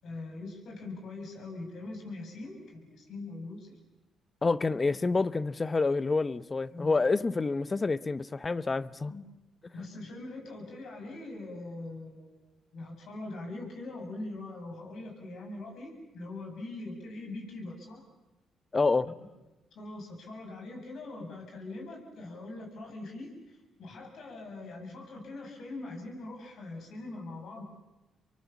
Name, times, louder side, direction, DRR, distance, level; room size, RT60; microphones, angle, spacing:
voice 1, 0.0-3.7 6.7-6.9 9.1-9.2 9.7-12.5 12.7-18.0 19.7-27.6, left 2 dB, 65° left, 7.6 m, -42 dB
voice 2, 4.4-9.1 18.7-19.1, left 3 dB, 30° left, 0.9 m, -28 dB
28.5 x 24.0 x 7.2 m
supercardioid pair, 55°, 0 cm